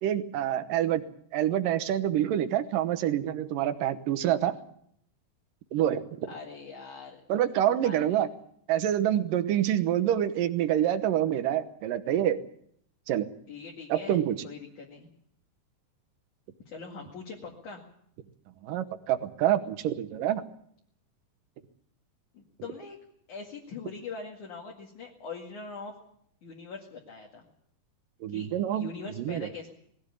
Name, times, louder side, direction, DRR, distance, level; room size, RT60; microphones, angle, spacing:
voice 1, 0.0-1.0 1.3-4.6 5.7-6.3 7.3-8.3 8.7-12.4 13.1-13.3 13.9-14.4 18.6-20.4 28.2-28.9 29.2-29.5, right 11 dB, 70° right, 11 dB, 2.3 m, -27 dB
voice 2, 6.3-7.2 7.8-8.2 13.5-14.2 14.4-15.1 16.7-17.8 22.3-23.0 23.3-25.9 26.4-27.5 28.3-28.5 28.7-29.7, left 4 dB, 55° left, -1 dB, 3.2 m, -42 dB
20.0 x 16.5 x 8.4 m, 0.68 s
omnidirectional pair, 4.7 m